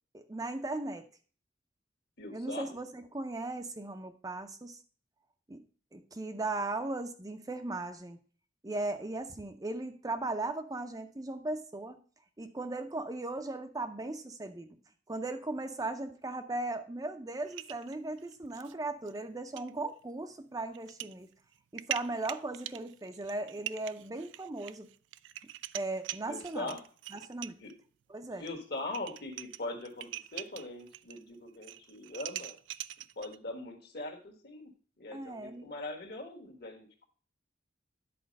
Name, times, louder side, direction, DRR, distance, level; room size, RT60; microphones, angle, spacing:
voice 1, 0.1-1.1 2.3-4.8 5.5-5.6 5.9-8.2 8.6-12.0 12.4-14.8 15.1-21.3 21.7-24.9 25.7-26.7 27.1-27.5 28.1-28.4 35.1-35.7, right 2 dB, 20° right, 7 dB, 0.5 m, -37 dB
voice 2, 2.2-2.8 26.3-26.8 27.6-27.7 28.4-32.6 33.1-34.7 35.0-37.0, left 2 dB, 60° left, 3 dB, 1.6 m, -41 dB
sound 1, 17.5-18.7 19.1-19.2 19.6-19.7 20.7-21.1 21.5-27.7 28.5-28.6 28.8-31.2 31.5-33.4, right 13 dB, 75° right, 0.3 m, -43 dB
10.0 x 4.3 x 5.2 m, 0.41 s
head